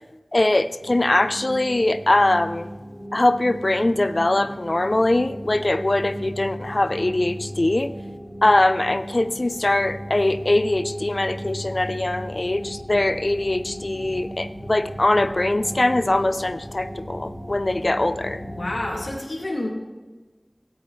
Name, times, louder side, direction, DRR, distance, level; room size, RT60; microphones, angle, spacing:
voice 1, 0.3-2.7 3.1-7.9 8.4-18.4, left 2 dB, 55° left, 12 dB, 0.5 m, -22 dB
sound 1, 0.8-19.1, equal, 5° left, 3.7 m, -36 dB
voice 2, 18.4-19.7, left 1 dB, 90° left, -2 dB, 2.4 m, -29 dB
17.0 x 8.4 x 3.2 m, 1.2 s
wide cardioid pair, 45°, 0 cm